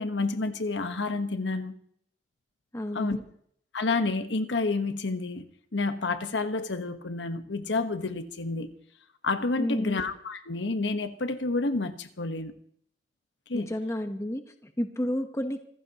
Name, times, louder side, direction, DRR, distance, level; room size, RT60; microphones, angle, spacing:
voice 1, 0.0-1.7 2.9-3.2 3.7-5.4 5.7-8.7 9.2-12.5 13.5-13.7, left 3 dB, 85° left, 1.2 m, -29 dB
voice 2, 2.7-3.2 9.6-10.0 13.5-15.6, left 1 dB, 15° left, 1.0 m, -31 dB
26.5 x 15.5 x 3.0 m
head